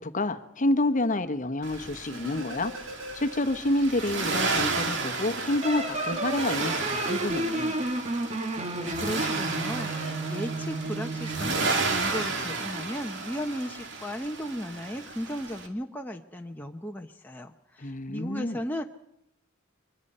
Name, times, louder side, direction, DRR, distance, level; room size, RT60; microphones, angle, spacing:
voice 1, 0.0-7.8 17.8-18.6, left 1 dB, 40° left, 8 dB, 1.1 m, -28 dB
Accelerating revving vroom, 1.6-15.7, right 3 dB, 60° right, 2.4 m, -33 dB
sound 1, 2.1-3.8 4.1-4.2 5.4-8.2 9.4-10.1, right 1 dB, 80° right, 4.5 m, -41 dB
sound 2, 5.6-11.7, right 2 dB, 30° right, 1.3 m, -32 dB
voice 2, 8.7-18.8, equal, 10° left, 2 dB, 0.8 m, -36 dB
23.5 x 22.5 x 5.5 m, 0.81 s
head